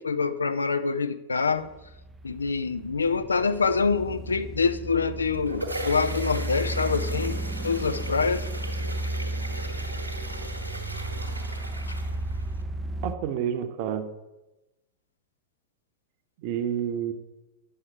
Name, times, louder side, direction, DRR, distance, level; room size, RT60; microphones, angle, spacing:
voice 1, 0.0-1.7 2.2-7.4 7.6-8.4, left 5 dB, 75° left, 11 dB, 0.4 m, -25 dB
sound 1, 1.6-13.1, right 1 dB, 15° right, 0.4 m, -34 dB
sound 2, 5.1-12.6, right 1 dB, 85° right, 1.1 m, -38 dB
voice 2, 13.0-14.0 16.4-17.1, right 9 dB, 45° right, 8 dB, 0.8 m, -29 dB
9.2 x 6.4 x 4.6 m, 1.0 s
figure-of-eight pair, 90°, 0 cm